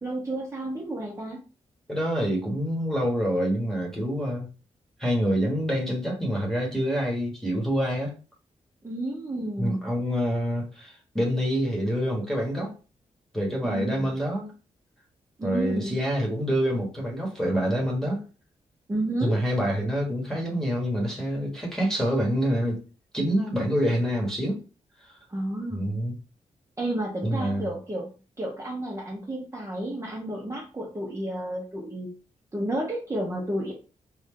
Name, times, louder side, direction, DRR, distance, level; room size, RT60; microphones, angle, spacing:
voice 1, 0.0-1.4 8.8-9.8 13.6-14.1 15.4-15.9 18.9-19.4 25.3-25.9 26.8-28.1 28.4-32.1 32.5-33.7, right 1 dB, 20° right, 0.9 m, -31 dB
voice 2, 1.9-4.5 5.0-8.2 9.6-12.7 13.3-14.5 15.4-18.2 19.2-22.8 23.1-24.6 25.0-25.2 25.7-26.2 27.2-27.7, equal, 5° left, 1.4 m, -26 dB
3.2 x 2.5 x 3.7 m
cardioid pair, 100°, 13 cm